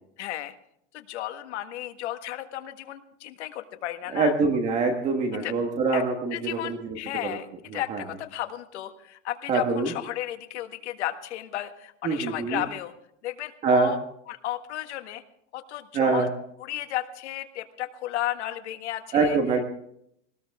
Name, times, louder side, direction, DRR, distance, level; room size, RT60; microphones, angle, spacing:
voice 1, 0.2-0.5 0.9-4.3 5.3-5.5 5.9-6.0 6.3-12.9 13.2-14.0 14.3-15.2 15.5-16.3 16.6-19.4, left 13 dB, 70° left, 7 dB, 1.7 m, -34 dB
voice 2, 4.1-7.4 7.7-8.0 9.5-9.9 12.0-12.6 13.6-13.9 15.9-16.3 19.1-19.7, right 4 dB, 20° right, 3 dB, 1.4 m, -24 dB
19.5 x 18.0 x 3.6 m, 0.71 s
supercardioid pair, 180°, 35 cm